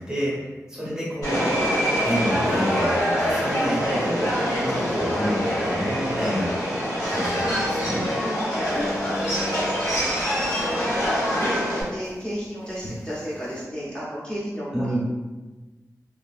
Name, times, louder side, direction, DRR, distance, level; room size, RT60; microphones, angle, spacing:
voice 1, 0.0-1.6 2.0-4.4 4.6-6.6 7.1-8.1 14.7-15.0, equal, 10° right, -7 dB, 1.0 m, -29 dB
Subway metro underground, 1.2-11.8, equal, 85° left, 1.4 m, -24 dB
voice 2, 8.2-15.0, equal, 15° left, -9 dB, 0.8 m, -34 dB
sound 1, 8.6-13.6, left 1 dB, 55° left, 0.5 m, -39 dB
2.7 x 2.6 x 2.4 m, 1.2 s
wide cardioid pair, 95°, 6 cm